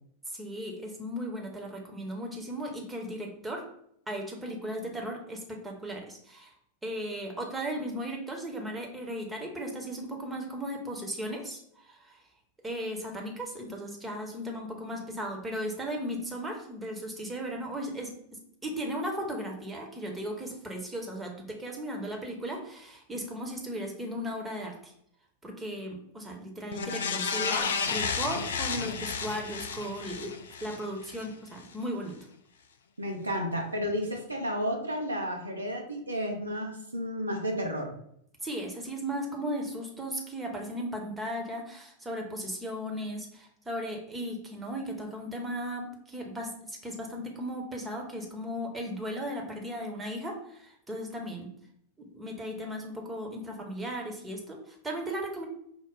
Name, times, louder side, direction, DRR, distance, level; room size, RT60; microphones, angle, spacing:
voice 1, 0.3-3.7 4.1-6.5 6.8-12.2 12.6-18.1 18.6-24.9 25.4-30.3 30.6-32.2 38.4-51.5 52.0-55.5, equal, 10° right, 1 dB, 0.8 m, -36 dB
sound 1, 26.7-31.3 31.6-31.7, left 5 dB, 65° left, 0.3 m, -32 dB
voice 2, 33.0-37.9, equal, 80° right, 2 dB, 0.8 m, -32 dB
4.8 x 2.1 x 3.7 m, 0.70 s
figure-of-eight pair, 90°, 0 cm